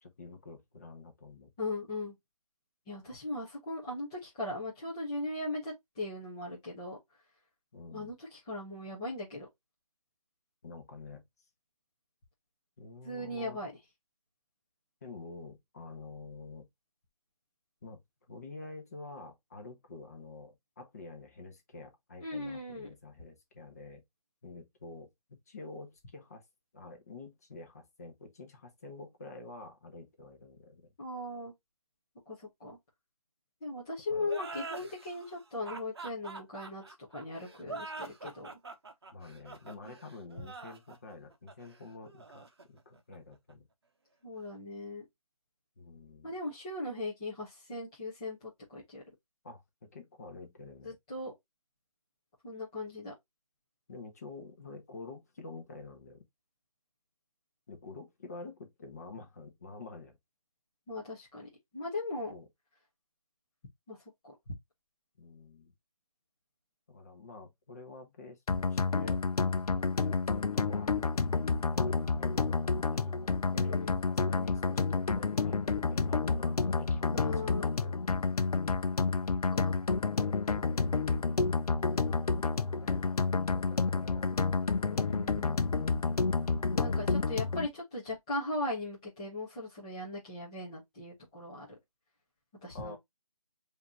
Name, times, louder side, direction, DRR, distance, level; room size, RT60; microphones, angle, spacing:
voice 1, 0.0-1.5 7.7-8.1 10.6-11.2 12.8-13.6 15.0-16.7 17.8-18.0 18.3-24.0 24.4-26.4 26.7-30.9 34.1-34.3 39.1-43.7 45.8-46.3 49.4-51.0 53.9-56.3 57.7-60.2 62.3-62.5 65.2-65.7 66.9-69.2 70.4-70.9 71.7-72.6 72.9-78.0 81.9-82.2 82.7-83.0 83.5-84.5 92.7-93.0, left 3 dB, 25° left, 1.1 m, -48 dB
voice 2, 1.6-2.1 2.9-7.0 7.9-9.5 13.0-13.7 22.2-22.9 31.0-31.5 32.3-32.8 33.6-36.8 37.1-38.6 39.8-40.0 44.2-45.0 46.2-49.0 50.8-51.3 52.4-53.1 60.9-62.3 63.9-64.0 64.2-64.5 73.5-74.0 77.1-77.7 79.5-79.8 84.8-85.6 86.7-91.7 92.6-93.0, left 2 dB, 10° left, 0.7 m, -38 dB
sound 1, 34.2-43.5, right 3 dB, 45° right, 0.9 m, -45 dB
sound 2, 68.5-87.7, left 4 dB, 80° left, 0.7 m, -30 dB
5.0 x 2.8 x 2.9 m
figure-of-eight pair, 170°, 19 cm